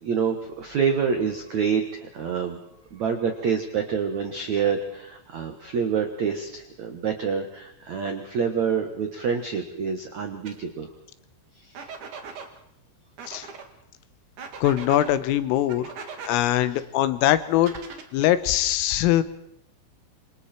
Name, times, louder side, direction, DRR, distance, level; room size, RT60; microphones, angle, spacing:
voice 1, 0.0-2.6 2.9-10.9 11.6-11.8, right 6 dB, 85° right, 5 dB, 1.6 m, -27 dB
sound 1, 10.5-10.6 11.7-12.5 13.2-13.7 14.4-15.1 15.7-16.4 17.6-18.3, right 5 dB, 50° right, 2.6 m, -39 dB
voice 2, 14.6-15.9 16.3-17.7 18.1-19.2, left 13 dB, 80° left, 13 dB, 3.6 m, -22 dB
27.5 x 25.5 x 4.5 m, 0.81 s
omnidirectional pair, 6.0 m